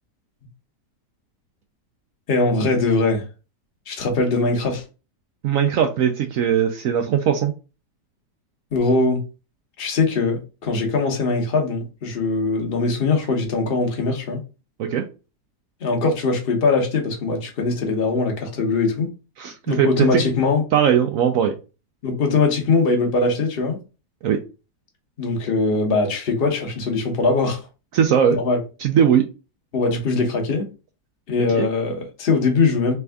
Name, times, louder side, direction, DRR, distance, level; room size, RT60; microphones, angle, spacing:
voice 1, 2.3-3.2 3.9-4.8 8.7-9.2 9.8-14.4 15.8-19.1 19.7-20.6 22.0-23.8 25.2-27.6 28.4-28.6 29.7-30.7 31.3-33.0, left 3 dB, 40° left, 3 dB, 1.0 m, -21 dB
voice 2, 5.4-7.5 14.8-15.0 19.4-20.2 20.7-21.5 24.2-24.4 27.9-28.4 28.8-29.2 31.5-31.7, right 8 dB, 70° right, 5 dB, 0.8 m, -19 dB
3.4 x 3.3 x 3.5 m, 0.31 s
omnidirectional pair, 1.8 m